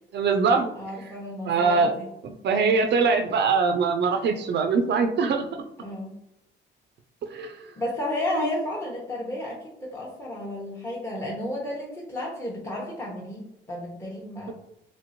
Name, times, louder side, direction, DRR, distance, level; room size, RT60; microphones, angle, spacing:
voice 1, 0.1-0.7 1.5-1.9 2.2-5.4 7.3-7.6 8.3-8.5, right 4 dB, 60° right, 5 dB, 0.4 m, -22 dB
voice 2, 0.7-2.1 2.5-2.8 5.8-6.1 7.8-14.5, left 1 dB, 10° left, -4 dB, 0.8 m, -33 dB
3.0 x 2.6 x 2.8 m, 0.84 s
cardioid pair, 90°, 20 cm